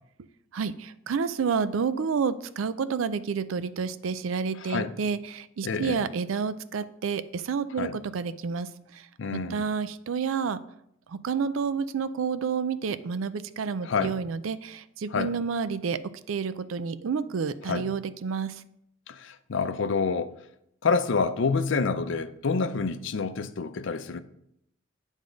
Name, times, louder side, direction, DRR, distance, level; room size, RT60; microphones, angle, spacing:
voice 1, 0.5-8.7 9.3-10.6 11.2-16.0 16.3-18.5, right 5 dB, 85° right, 14 dB, 0.4 m, -29 dB
voice 2, 4.6-4.9 5.6-6.0 7.8-8.0 9.2-9.6 13.8-14.2 15.1-15.3 17.7-17.9 19.1-20.3 20.8-24.2, left 4 dB, 65° left, 11 dB, 0.5 m, -28 dB
9.4 x 3.6 x 5.1 m, 0.75 s
head